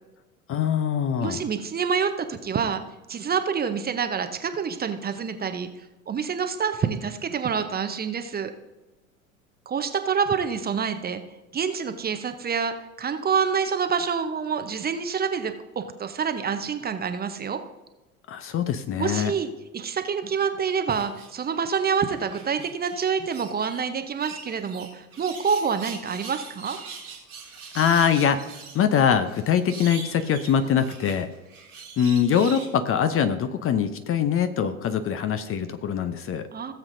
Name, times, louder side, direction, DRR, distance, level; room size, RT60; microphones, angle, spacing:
voice 1, 0.5-1.4 18.3-19.3 27.7-28.5 28.7-31.3 32.0-36.5, left 8 dB, 30° left, 10 dB, 0.7 m, -23 dB
voice 2, 1.2-2.8 3.1-5.7 6.1-8.5 9.7-11.2 11.5-17.6 19.0-26.8 36.5-36.7, right 6 dB, 20° right, 8 dB, 0.8 m, -27 dB
sound 1, 20.9-21.7 22.1-23.8 24.2-32.7, right 5 dB, 85° right, 2.5 m, -42 dB
17.0 x 7.4 x 2.6 m, 1.1 s
figure-of-eight pair, 75°, 42 cm